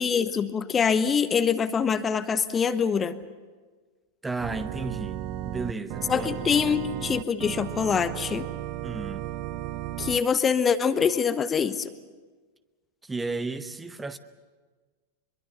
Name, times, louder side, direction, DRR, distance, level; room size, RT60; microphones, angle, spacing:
voice 1, 0.0-3.2 6.1-8.5 10.0-11.9, left 6 dB, 20° left, 12 dB, 0.9 m, -24 dB
voice 2, 4.2-6.3 8.8-9.3 13.0-14.2, right 3 dB, 10° right, 12 dB, 1.0 m, -33 dB
Organ, 4.4-10.2, right 13 dB, 40° right, 0.7 m, -34 dB
23.5 x 23.0 x 7.1 m, 1.4 s
figure-of-eight pair, 90°, 0 cm